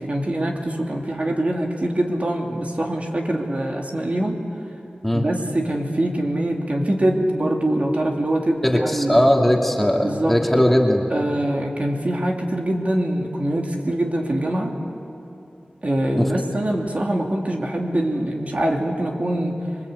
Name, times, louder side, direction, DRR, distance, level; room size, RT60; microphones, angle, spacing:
voice 1, 0.0-4.4 5.1-9.3 10.0-10.4 11.1-14.7 15.8-19.6, right 1 dB, 50° right, 0 dB, 2.8 m, -23 dB
voice 2, 8.6-11.1 16.2-16.3, equal, 5° left, 0 dB, 2.5 m, -18 dB
26.0 x 23.0 x 8.2 m, 2.8 s
wide cardioid pair, 60°, 3 cm